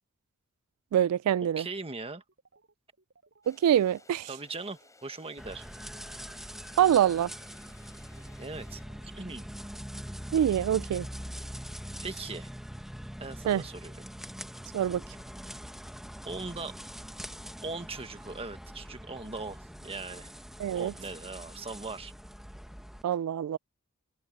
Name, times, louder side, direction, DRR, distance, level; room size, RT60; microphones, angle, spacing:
voice 1, 0.9-1.7 3.5-4.3 6.8-7.3 10.3-11.1 13.5-13.6 14.7-15.0 20.6-20.9 23.0-23.6, right 10 dB, 90° right, 0.3 m, -25 dB
voice 2, 1.6-2.2 4.3-5.7 8.4-9.5 12.0-12.5 13.2-14.0 16.2-16.8 17.6-20.3 20.7-22.1, right 3 dB, 25° right, 1.5 m, -40 dB
sound 1, 1.7-4.9 5.2-5.5 5.8-10.6, right 3 dB, 55° right, 7.2 m, -64 dB
sound 2, 3.4-8.8, left 3 dB, 15° left, 6.1 m, -59 dB
sound 3, 5.4-23.0, equal, ahead, 1.1 m, -43 dB
head